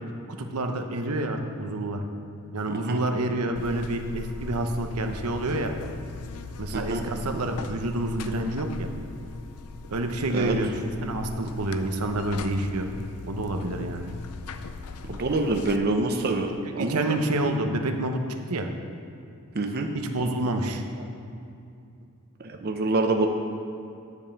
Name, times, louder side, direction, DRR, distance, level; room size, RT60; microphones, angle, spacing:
voice 1, 0.4-2.0 2.5-5.7 6.6-8.9 9.9-10.7 11.0-12.9 13.3-14.1 16.8-18.2 18.5-18.7 19.9-20.8, right 2 dB, 90° right, 5 dB, 0.8 m, -28 dB
voice 2, 2.7-3.0 6.7-7.0 10.3-10.5 15.1-16.5 16.8-17.2 19.5-19.9 22.4-23.3, right 2 dB, 45° right, 4 dB, 0.6 m, -26 dB
Buzz, 3.6-15.8, left 3 dB, 90° left, 0.5 m, -39 dB
9.8 x 5.3 x 7.1 m, 2.6 s
head